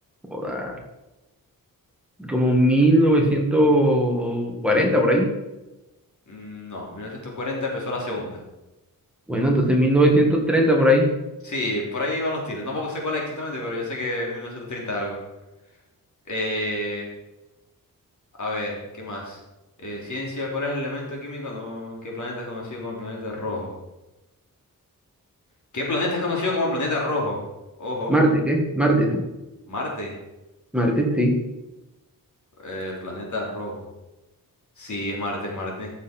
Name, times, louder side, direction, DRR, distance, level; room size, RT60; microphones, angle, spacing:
voice 1, 0.3-0.8 2.2-5.3 9.3-11.1 28.1-29.2 30.7-31.4, equal, 5° right, 0 dB, 2.0 m, -19 dB
voice 2, 6.3-8.4 11.4-15.2 16.3-17.1 18.4-19.4 19.8-23.7 25.7-27.4 27.8-28.1 29.7-30.1 32.6-33.9 34.8-35.9, left 2 dB, 55° left, -2 dB, 3.4 m, -29 dB
14.0 x 6.9 x 4.5 m, 1.0 s
wide cardioid pair, 145°, 35 cm